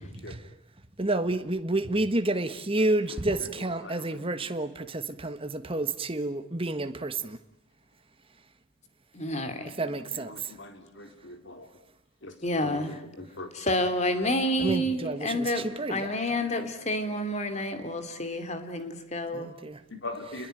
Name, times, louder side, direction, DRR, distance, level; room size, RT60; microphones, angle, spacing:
voice 1, 0.0-0.3 3.4-4.5 9.8-11.7 12.2-13.5 19.9-20.5, left 2 dB, 60° left, 4.1 m, -42 dB
voice 2, 1.0-7.4 9.7-10.5 14.6-16.1 19.3-19.8, right 2 dB, 25° right, 1.4 m, -30 dB
voice 3, 9.1-9.7 12.4-13.0 13.5-19.5, left 1 dB, 35° left, 2.7 m, -29 dB
30.0 x 21.5 x 9.2 m
head